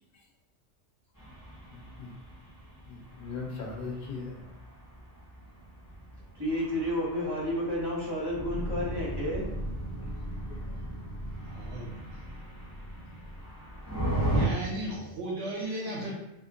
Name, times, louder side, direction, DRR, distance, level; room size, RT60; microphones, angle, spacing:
sound 1, 1.1-14.5, right 1 dB, 15° left, 0.9 m, -37 dB
voice 1, 2.9-4.4 8.9-9.0 15.6-15.9, left 4 dB, 45° left, -3 dB, 0.8 m, -39 dB
voice 2, 6.3-9.5, left 1 dB, 20° right, -6 dB, 1.1 m, -31 dB
voice 3, 11.5-12.1 14.2-16.1, right 1 dB, 70° right, -3 dB, 0.9 m, -35 dB
2.7 x 2.4 x 3.8 m, 0.91 s
omnidirectional pair, 1.2 m